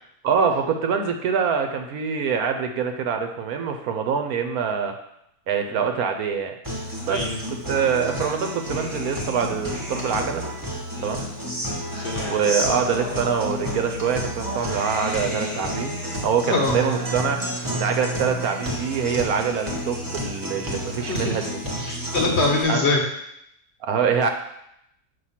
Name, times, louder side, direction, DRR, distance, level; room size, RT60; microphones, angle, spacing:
voice 1, 0.2-4.9 5.5-6.5 7.1-7.2 7.5-10.4 11.0-11.3 12.3-17.4 17.7-21.6 22.7-22.8 23.8-24.3, right 6 dB, 70° right, 5 dB, 1.0 m, -24 dB
Guitar, 6.6-22.6, equal, 15° right, 0.8 m, -30 dB
voice 2, 11.9-12.3 16.5-16.8 21.0-21.4 21.8-23.0, left 3 dB, 50° left, -1 dB, 1.1 m, -24 dB
6.0 x 2.8 x 5.6 m, 0.78 s
omnidirectional pair, 1.7 m